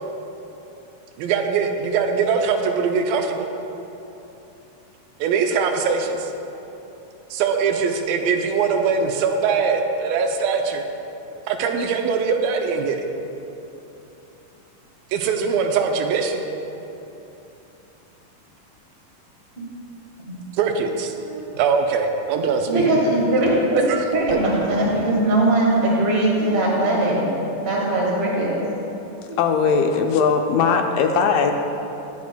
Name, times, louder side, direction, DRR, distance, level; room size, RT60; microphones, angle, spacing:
voice 1, 1.2-3.5 5.2-6.3 7.3-10.9 11.5-13.0 15.1-16.4 20.6-21.1 21.6-22.7 23.7-24.1 24.3-24.4, right 5 dB, 85° right, 4 dB, 2.3 m, -22 dB
voice 2, 22.7-23.8 24.1-27.3 27.6-29.0 29.3-29.4, right 1 dB, 50° right, -4 dB, 0.7 m, -20 dB
voice 3, 29.4-31.5, left 5 dB, 80° left, 4 dB, 2.1 m, -19 dB
14.0 x 8.3 x 2.2 m, 2.9 s
omnidirectional pair, 4.0 m